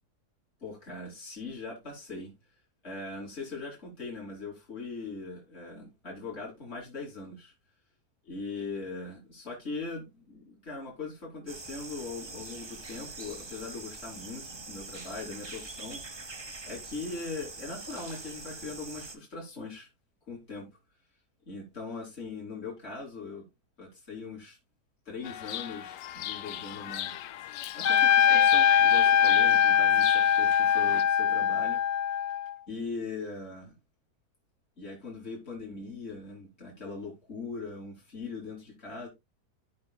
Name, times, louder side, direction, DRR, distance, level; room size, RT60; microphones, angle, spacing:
voice 1, 0.6-2.3 2.8-7.5 8.3-19.9 20.3-20.7 21.5-23.4 23.8-24.6 25.1-27.2 27.8-31.8 32.7-33.7 34.8-39.1, left 3 dB, 40° left, 3.5 m, -40 dB
sound 1, 11.5-19.2, right 3 dB, 20° right, 0.8 m, -43 dB
Chirp tweet, 25.2-31.0, left 12 dB, 85° left, 1.3 m, -39 dB
Trumpet, 27.8-32.6, left 8 dB, 65° left, 0.7 m, -22 dB
16.0 x 5.7 x 2.3 m
omnidirectional pair, 1.8 m